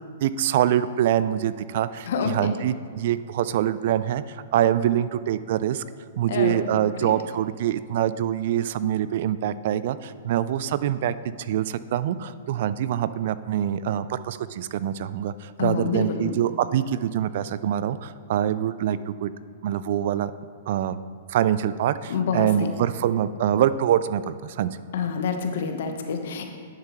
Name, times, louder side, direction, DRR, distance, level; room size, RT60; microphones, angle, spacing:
voice 1, 0.2-5.8 6.2-19.3 19.6-20.3 20.7-21.0 21.3-24.7, right 11 dB, 60° right, 15 dB, 0.3 m, -25 dB
voice 2, 2.1-2.6 6.3-6.7 7.0-7.1 15.6-16.4 22.1-22.7 24.9-26.4, left 6 dB, 65° left, 5 dB, 1.0 m, -27 dB
11.0 x 6.7 x 3.0 m, 2.2 s
hypercardioid pair, 115°, 0 cm